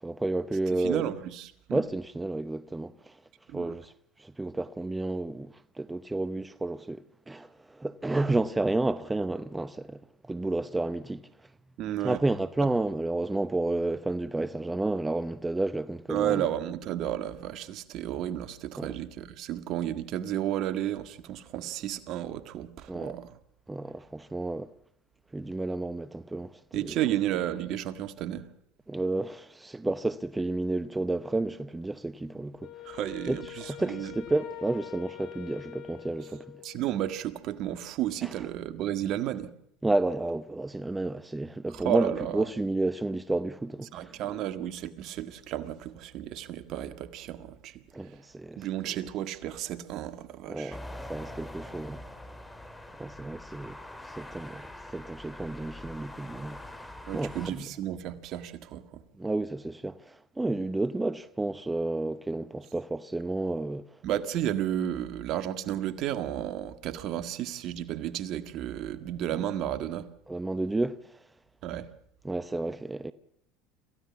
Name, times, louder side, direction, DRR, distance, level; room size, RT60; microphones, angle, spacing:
voice 1, 0.0-1.0 1.7-3.1 3.5-3.9 4.2-10.0 10.3-11.2 12.0-16.4 18.8-18.9 22.9-23.1 23.7-24.7 25.3-26.9 28.9-32.7 33.3-33.4 33.8-36.4 39.8-44.1 47.9-48.7 50.5-52.0 53.0-53.8 54.0-57.6 59.2-63.8 69.4-69.5 70.3-71.0 72.2-73.1, right 2 dB, 10° right, 0.8 m, -31 dB
voice 2, 0.7-1.8 3.5-3.8 11.8-12.2 16.1-23.4 26.7-28.5 32.8-34.1 36.6-39.5 41.7-42.5 43.9-48.2 48.6-50.8 57.1-59.0 64.0-70.1 71.6-71.9, right 11 dB, 55° right, 1.7 m, -32 dB
Wind instrument woodwind instrument, 32.6-37.0, left 12 dB, 60° left, 2.6 m, -44 dB
sound 1, 50.7-57.5, left 1 dB, 10° left, 3.3 m, -44 dB
27.0 x 15.5 x 7.2 m
hypercardioid pair, 85°, 0 cm